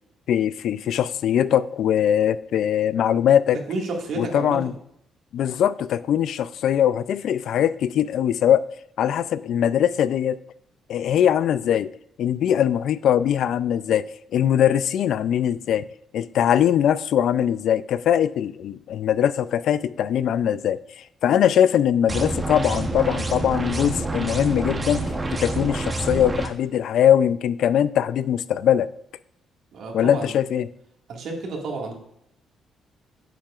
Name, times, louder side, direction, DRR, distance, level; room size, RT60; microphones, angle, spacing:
voice 1, 0.3-3.6 4.2-4.7 5.3-8.6 9.0-10.4 10.9-11.9 12.2-14.1 14.3-15.8 16.1-28.9 29.9-30.7, left 10 dB, 70° left, 0.3 m, -21 dB
voice 2, 3.7-4.7 29.7-30.3 31.1-31.9, right 3 dB, 65° right, 1.8 m, -31 dB
sound 1, 22.1-26.5, right 2 dB, 20° right, 0.8 m, -27 dB
9.1 x 7.4 x 2.4 m
cardioid pair, 135°, 0 cm